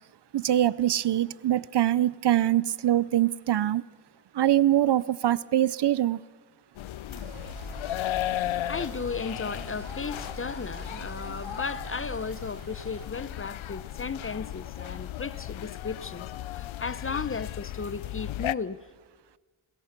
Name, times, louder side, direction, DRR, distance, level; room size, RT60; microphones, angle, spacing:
voice 1, 0.3-3.8 4.3-6.2, right 12 dB, 55° right, 0.6 m, -23 dB
sound 1, 6.7-18.5, left 14 dB, 75° left, 0.6 m, -35 dB
sound 2, 7.1-13.0, right 5 dB, 80° right, 2.5 m, -44 dB
voice 2, 8.7-16.3 16.5-18.8, left 5 dB, 25° left, 0.7 m, -35 dB
28.5 x 21.0 x 5.9 m
wide cardioid pair, 95°, 49 cm